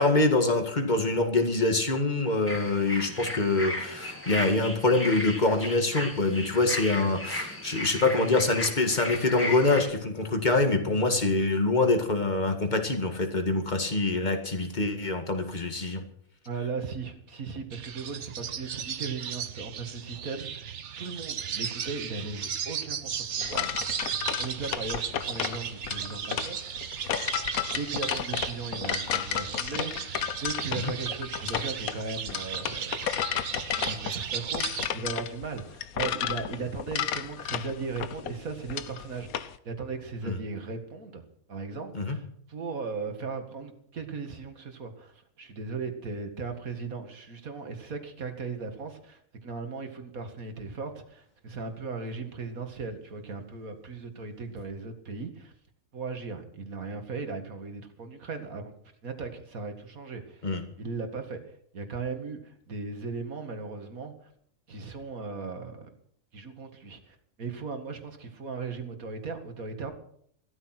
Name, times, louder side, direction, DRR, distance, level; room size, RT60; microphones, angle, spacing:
voice 1, 0.0-16.0 30.8-30.9 40.2-40.4 41.9-42.2 60.4-60.6, left 2 dB, 30° left, 5 dB, 2.1 m, -25 dB
sound 1, 2.5-9.9, left 1 dB, 10° left, 2.6 m, -35 dB
voice 2, 16.5-24.0 24.4-26.8 27.7-33.0 33.5-41.2 41.5-55.5 55.9-58.7 59.0-61.4 61.7-64.3 64.7-65.9 66.3-69.9, right 4 dB, 80° right, 6 dB, 2.4 m, -37 dB
sound 2, 17.7-34.9, right 8 dB, 60° right, 1.2 m, -36 dB
sound 3, 23.4-39.5, left 9 dB, 85° left, 1.3 m, -32 dB
15.5 x 13.5 x 6.0 m, 0.66 s
omnidirectional pair, 1.5 m